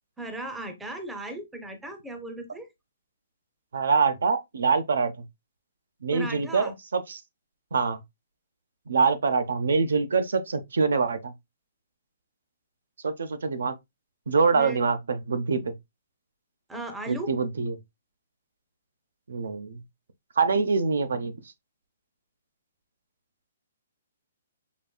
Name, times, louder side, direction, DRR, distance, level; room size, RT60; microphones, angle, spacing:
voice 1, 0.2-2.7 6.1-6.7 14.5-15.0 16.7-17.3, right 1 dB, 5° right, 0.5 m, -36 dB
voice 2, 3.7-5.2 6.0-7.2 7.7-8.0 8.9-11.3 13.0-13.7 14.3-15.7 17.1-17.7 19.3-19.8 20.4-21.3, right 4 dB, 85° right, 0.6 m, -25 dB
5.2 x 2.5 x 2.2 m
hypercardioid pair, 160°, 0 cm